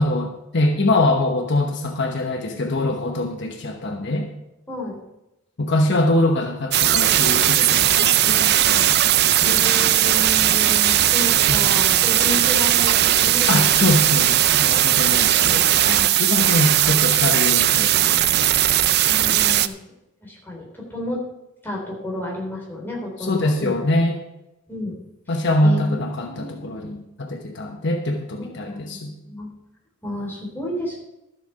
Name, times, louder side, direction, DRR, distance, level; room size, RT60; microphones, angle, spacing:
voice 1, 0.0-4.3 5.6-9.6 11.5-11.7 13.5-18.5 23.2-24.2 25.3-29.1, left 1 dB, 55° left, 3 dB, 1.0 m, -23 dB
sound 1, 6.7-19.7, right 12 dB, 50° right, 0.5 m, -18 dB
voice 2, 9.4-13.5 14.4-14.6 19.1-19.8 20.2-21.2 21.6-23.7 24.7-25.0 25.3-25.4 25.6-26.7 28.4-29.5 30.0-31.0, left 1 dB, 10° left, -3 dB, 3.7 m, -31 dB
13.0 x 7.8 x 5.8 m, 0.92 s
head